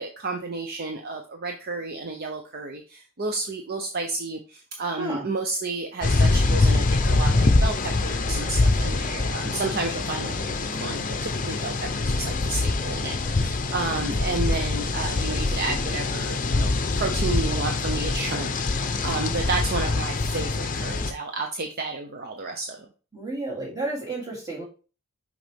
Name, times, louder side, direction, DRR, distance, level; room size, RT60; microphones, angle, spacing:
voice 1, 0.0-22.9, right 3 dB, 45° right, 4 dB, 0.7 m, -31 dB
sound 1, 6.0-21.1, left 3 dB, 35° left, 0.7 m, -24 dB
voice 2, 23.1-24.6, right 2 dB, 15° right, -4 dB, 2.8 m, -31 dB
6.4 x 5.1 x 3.5 m, 0.35 s
head